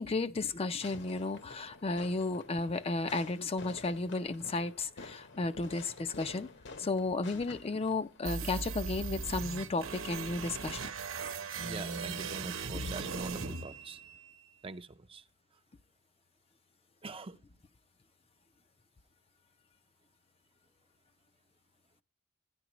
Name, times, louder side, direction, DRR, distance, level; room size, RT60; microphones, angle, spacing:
voice 1, 0.0-6.5 6.8-10.8 12.7-12.9, left 3 dB, 30° left, 0.4 m, -33 dB
Fireworks, 0.8-8.2, left 3 dB, 60° left, 1.0 m, -50 dB
sound 1, 8.2-14.3, right 5 dB, 75° right, 0.9 m, -39 dB
voice 2, 11.6-14.0 14.6-15.2 17.0-17.4, right 3 dB, 30° right, 0.5 m, -43 dB
12.5 x 10.0 x 3.0 m
head